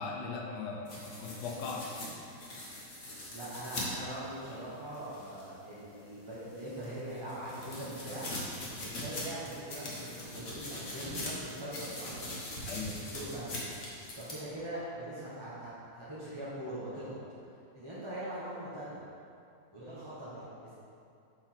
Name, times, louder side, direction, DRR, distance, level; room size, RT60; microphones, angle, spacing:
voice 1, 0.0-2.0 12.6-13.0, left 4 dB, 80° left, 0 dB, 1.4 m, -39 dB
sound 1, 0.9-5.5 6.0-14.3, left 1 dB, 40° left, 1.3 m, -42 dB
voice 2, 3.3-8.3 8.7-12.3 12.9-13.6 14.1-17.2 17.7-19.0 19.7-20.7, right 1 dB, 20° right, -10 dB, 0.9 m, -42 dB
5.9 x 4.5 x 4.4 m, 2.6 s
omnidirectional pair, 1.8 m